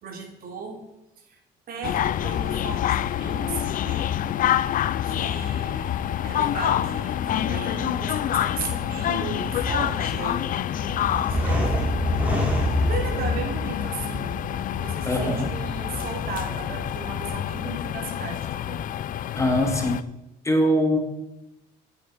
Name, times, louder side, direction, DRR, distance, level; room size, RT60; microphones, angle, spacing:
voice 1, 0.0-0.8 1.3-1.4 1.7-4.1 5.0-11.6 12.8-14.4 14.8-18.9, right 4 dB, 60° right, 2 dB, 3.3 m, -36 dB
sound 1, 1.8-20.0, left 11 dB, 55° left, 0.5 m, -27 dB
sound 2, 9.3-17.4, equal, 10° right, 4.0 m, -29 dB
voice 2, 15.1-15.5 19.3-20.0 20.4-21.0, equal, 15° left, 4 dB, 2.2 m, -22 dB
14.0 x 9.9 x 5.2 m, 0.95 s
cardioid pair, 110°, 17 cm